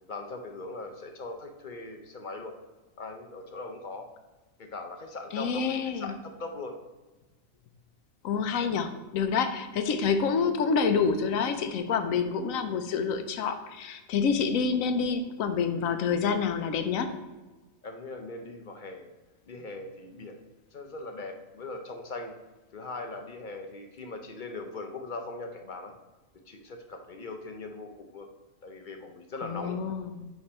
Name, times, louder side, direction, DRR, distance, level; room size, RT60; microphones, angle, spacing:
voice 1, 0.1-2.5 3.0-4.1 4.6-6.8 17.8-19.1 19.5-20.4 20.7-22.3 22.7-25.9 26.5-28.3 28.6-29.8, left 2 dB, 45° left, 4 dB, 0.7 m, -40 dB
voice 2, 5.3-6.1 8.2-17.1 29.4-30.3, left 5 dB, 80° left, 8 dB, 1.1 m, -28 dB
9.9 x 3.5 x 4.3 m, 1.2 s
omnidirectional pair, 1.4 m